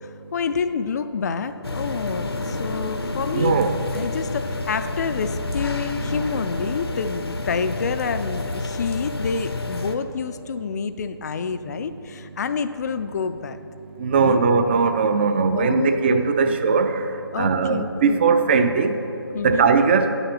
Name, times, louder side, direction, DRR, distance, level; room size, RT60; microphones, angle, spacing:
voice 1, 0.0-3.5 3.9-13.6 14.2-14.5 15.5-16.6 17.3-18.2 19.3-19.7, left 5 dB, 45° left, 10 dB, 0.4 m, -28 dB
sound 1, 1.6-10.0, left 2 dB, 80° left, 0.9 m, -29 dB
voice 2, 3.3-3.7 14.0-17.0 17.4-19.0 19.4-20.1, right 5 dB, 25° right, 8 dB, 0.5 m, -19 dB
9.5 x 6.8 x 5.9 m, 2.9 s
figure-of-eight pair, 150°, 13 cm